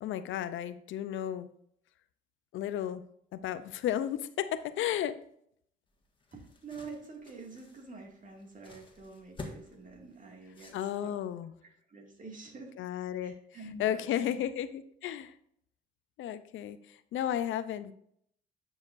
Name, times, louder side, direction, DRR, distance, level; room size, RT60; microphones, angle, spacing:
voice 1, 0.0-1.5 2.5-3.0 3.3-5.2 10.7-11.5 12.8-13.3 13.8-15.3 16.2-17.9, left 11 dB, 80° left, 13 dB, 0.6 m, -33 dB
sound 1, 5.9-11.3, left 2 dB, 25° left, 1.6 m, -50 dB
voice 2, 6.3-11.2 11.9-12.8 13.2-14.3 15.0-15.1, right 3 dB, 40° right, 1 dB, 2.1 m, -47 dB
9.8 x 6.4 x 2.6 m, 0.69 s
cardioid pair, 90°, 20 cm